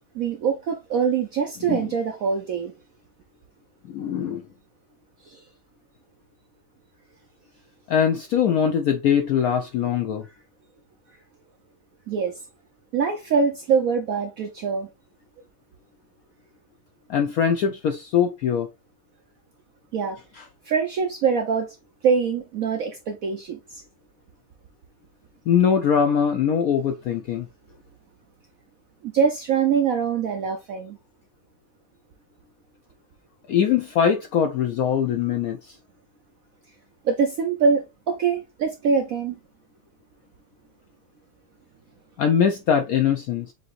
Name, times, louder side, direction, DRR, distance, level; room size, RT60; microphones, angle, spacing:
voice 1, 0.1-2.7 5.3-5.4 12.1-12.3 12.9-14.9 19.9-20.2 20.6-21.7 22.0-23.8 29.0-31.0 37.0-39.4, right 6 dB, 85° right, 0.7 m, -24 dB
voice 2, 3.9-4.4 7.9-10.3 17.1-18.7 20.4-20.5 25.5-27.5 33.5-35.7 42.2-43.5, left 8 dB, 85° left, 0.8 m, -22 dB
6.9 x 2.7 x 2.4 m
omnidirectional pair, 2.2 m